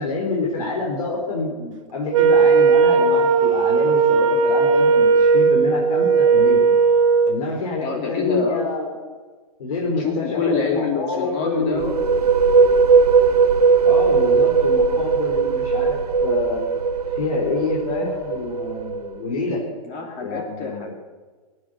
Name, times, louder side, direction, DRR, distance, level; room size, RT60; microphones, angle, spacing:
voice 1, 0.0-6.6 7.3-8.9 9.6-11.9 13.8-16.6 17.1-19.6 20.2-20.9, left 3 dB, 70° left, -1 dB, 4.4 m, -27 dB
Wind instrument woodwind instrument, 2.1-7.4, right 5 dB, 60° right, 2.1 m, -16 dB
voice 2, 7.8-8.6 10.0-12.1 19.8-20.9, left 4 dB, 35° left, 2 dB, 3.0 m, -26 dB
sound 1, 11.6-19.3, right 5 dB, 85° right, 1.1 m, -18 dB
20.5 x 10.5 x 6.8 m, 1.4 s
hypercardioid pair, 125°, 19 cm